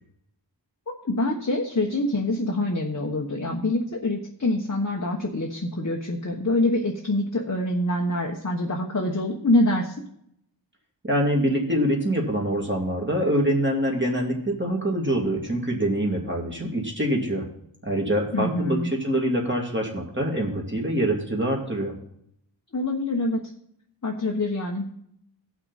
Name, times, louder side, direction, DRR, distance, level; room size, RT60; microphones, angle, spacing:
voice 1, 1.0-9.9 18.3-18.9 22.7-23.4 24.0-25.0, left 2 dB, 35° left, 0 dB, 1.2 m, -25 dB
voice 2, 11.0-17.4 17.8-21.9, right 1 dB, 25° right, -1 dB, 2.4 m, -25 dB
17.0 x 6.0 x 4.1 m, 0.71 s
wide cardioid pair, 80°, 45 cm